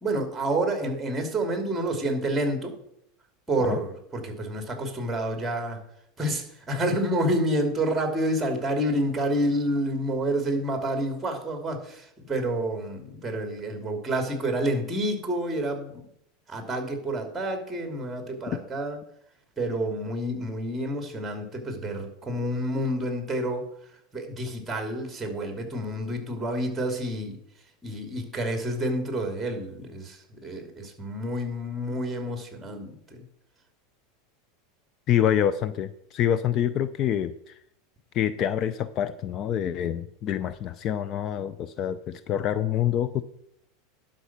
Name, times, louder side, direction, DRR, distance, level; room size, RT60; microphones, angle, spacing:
voice 1, 0.0-2.7 3.5-5.8 6.2-16.0 16.5-19.0 19.6-23.6 24.1-27.4 27.8-30.2 30.4-32.9, right 1 dB, 10° right, 5 dB, 2.5 m, -29 dB
voice 2, 35.1-37.6 38.1-43.2, left 10 dB, 40° left, 14 dB, 0.5 m, -26 dB
11.5 x 5.5 x 5.9 m, 0.73 s
supercardioid pair, 125°, 0 cm